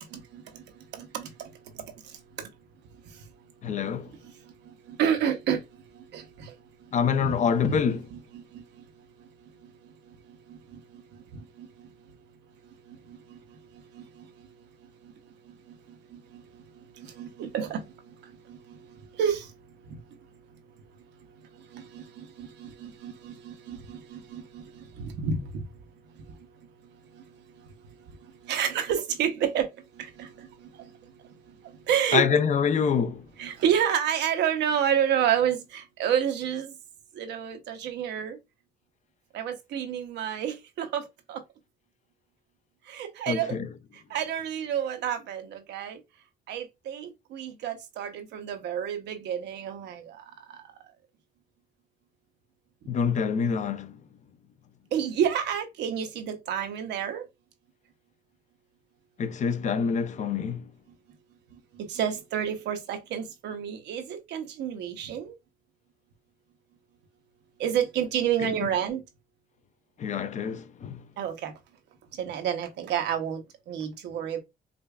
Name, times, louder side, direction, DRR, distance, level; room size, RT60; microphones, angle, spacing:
voice 1, 0.1-0.6 0.9-1.5 4.9-5.6 6.1-6.5 7.2-7.3 7.7-8.6 10.5-10.8 11.3-11.7 13.1-13.4 13.9-14.2 16.1-16.4 17.0-17.8 18.5-18.8 19.2-19.5 21.7-25.6 28.4-29.7 30.0-30.9 31.9-32.2 33.4-36.7 37.2-38.4 39.3-41.4 42.9-43.6 44.1-46.0 46.5-50.2 54.9-57.2 61.8-65.3 67.6-69.0 71.2-71.5 72.2-74.4, right 8 dB, 85° right, 0.8 m, -30 dB
voice 2, 3.6-4.1 6.9-8.1 32.1-33.2 43.3-43.7 52.9-53.9 59.2-60.6 68.4-68.5 70.0-71.0, left 6 dB, 45° left, 0.4 m, -26 dB
5.0 x 2.3 x 2.3 m
cardioid pair, 105°, 17 cm